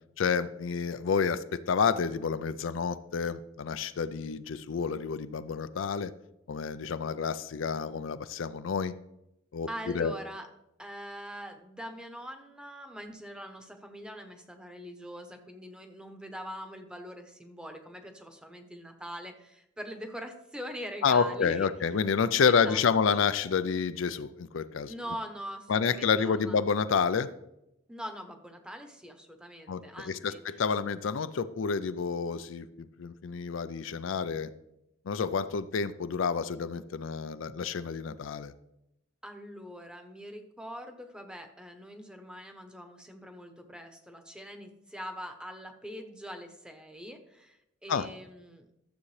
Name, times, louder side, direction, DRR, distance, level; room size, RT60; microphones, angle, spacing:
voice 1, 0.2-6.1 6.5-8.9 9.5-10.1 21.0-24.9 25.7-27.3 29.7-29.8 30.1-34.5 35.1-38.5 47.9-48.1, left 6 dB, 85° left, 12 dB, 0.5 m, -29 dB
voice 2, 9.7-10.5 10.8-21.7 22.4-22.8 23.1-23.3 24.9-26.6 27.9-30.4 39.2-48.6, equal, 5° right, 5 dB, 0.9 m, -43 dB
12.5 x 7.1 x 3.2 m, 0.85 s
head